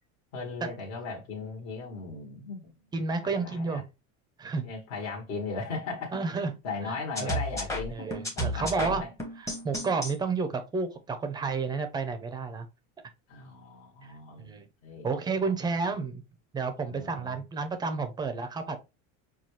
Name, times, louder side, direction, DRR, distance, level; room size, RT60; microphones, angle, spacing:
voice 1, 0.3-2.6 3.2-3.8 4.6-6.2 6.6-8.1 8.3-9.1 13.3-14.5 14.8-15.1 15.4-15.5 16.8-17.4, left 4 dB, 50° left, 1.3 m, -37 dB
voice 2, 2.9-3.8 4.4-4.6 6.1-6.5 6.9-7.0 7.2-7.4 7.9-9.0 9.4-12.7 14.0-14.2 14.4-14.7 15.0-16.2 16.5-18.8, right 4 dB, 15° right, 0.5 m, -31 dB
sound 1, 7.2-10.1, equal, 10° left, 0.9 m, -33 dB
5.6 x 2.3 x 3.1 m
cardioid pair, 165°, 34 cm